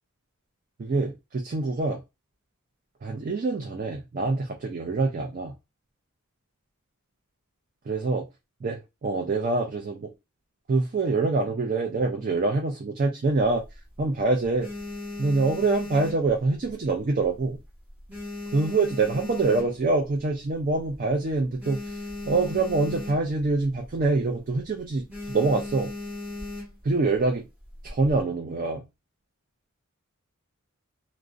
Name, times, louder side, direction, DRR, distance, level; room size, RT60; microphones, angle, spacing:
voice 1, 0.8-2.0 3.0-5.5 7.9-8.2 8.6-10.1 10.7-13.6 14.0-14.7 15.2-17.6 18.5-22.0 22.2-25.9 26.8-27.5 27.8-28.8, right 3 dB, 40° right, 0.4 m, -25 dB
sound 1, 13.3-14.0 14.4-16.9 17.2-17.6 17.9-20.1 20.6-20.7 20.9-21.0 21.3-23.5 23.8-24.1 24.4-24.6 25.1-26.9 27.6-28.2, left 2 dB, 5° right, 0.8 m, -37 dB
2.4 x 2.1 x 2.4 m
head